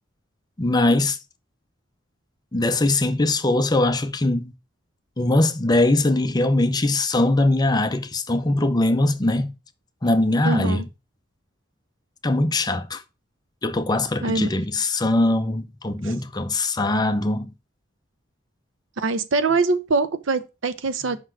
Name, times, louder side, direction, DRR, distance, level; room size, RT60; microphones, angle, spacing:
voice 1, 0.6-1.2 2.5-4.5 5.2-9.5 10.0-10.9 12.2-13.0 13.6-17.5, left 2 dB, 20° left, 0.6 m, -21 dB
voice 2, 10.4-10.8 14.2-14.5 16.0-16.1 19.0-21.2, right 3 dB, 75° right, 0.7 m, -23 dB
5.5 x 4.1 x 6.1 m
head